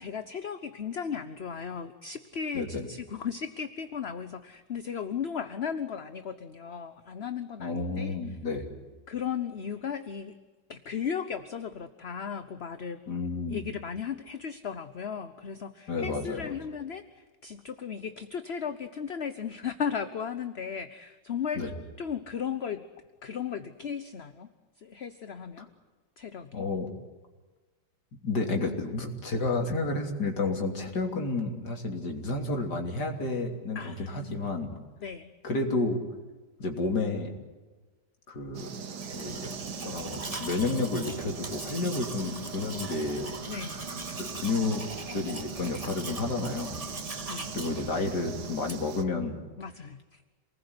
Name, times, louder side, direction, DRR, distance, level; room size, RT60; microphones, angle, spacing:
voice 1, 0.0-8.2 9.1-10.4 10.7-13.0 13.5-21.6 22.0-22.8 23.2-24.5 24.8-25.7 26.2-26.6 33.7-34.5 35.0-35.3 41.8-41.9 43.5-43.8 47.3-47.5 49.6-50.2, left 7 dB, 40° left, 11 dB, 1.1 m, -36 dB
voice 2, 2.5-2.9 7.6-8.7 13.1-13.6 15.9-16.5 21.6-21.7 26.5-26.9 28.2-34.8 35.4-36.0 36.6-37.3 38.3-38.7 39.1-39.5 39.8-43.3 44.2-44.8 45.1-46.8 47.5-49.4, left 3 dB, 65° left, 3 dB, 3.8 m, -31 dB
sound 1, 38.5-49.0, right 6 dB, 65° right, 1.9 m, -41 dB
Domestic sounds home sounds, 38.9-49.0, right 2 dB, 20° right, 1.8 m, -40 dB
28.5 x 20.0 x 9.8 m, 1.3 s
omnidirectional pair, 1.9 m